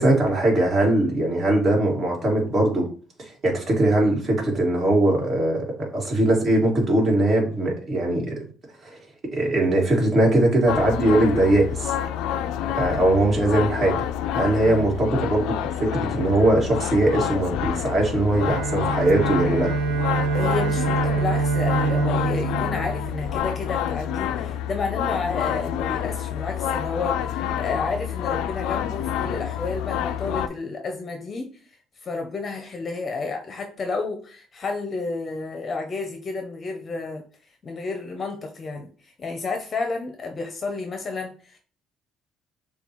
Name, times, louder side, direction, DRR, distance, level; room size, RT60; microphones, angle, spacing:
voice 1, 0.0-2.9 3.2-5.6 5.9-8.4 8.8-9.0 9.3-11.9 12.7-14.0 14.3-19.7, right 1 dB, 40° right, -1 dB, 1.9 m, -21 dB
sound 1, 10.7-30.5, left 10 dB, 80° left, 0.3 m, -28 dB
Bowed string instrument, 18.3-23.7, right 4 dB, 65° right, 0.8 m, -26 dB
voice 2, 20.3-31.6 32.0-37.2 37.6-41.6, left 3 dB, 35° left, 4 dB, 0.7 m, -31 dB
6.8 x 2.3 x 3.0 m, 0.41 s
cardioid pair, 110°, 0 cm